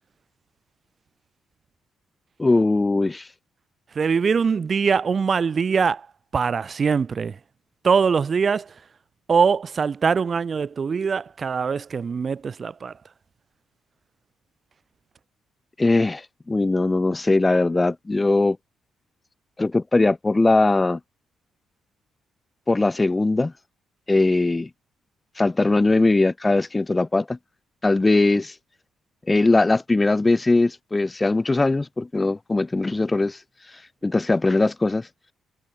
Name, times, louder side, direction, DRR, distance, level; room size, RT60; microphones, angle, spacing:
voice 1, 2.4-3.3 15.8-18.6 19.6-21.0 22.7-23.5 24.1-24.7 25.4-27.4 27.8-28.6 29.3-33.4 33.7-35.1, left 2 dB, 20° left, 1.2 m, -20 dB
voice 2, 4.0-6.1 6.3-7.4 7.8-8.7 9.3-12.9, right 5 dB, 40° right, 3.5 m, -22 dB
cardioid pair, 90°, 0 cm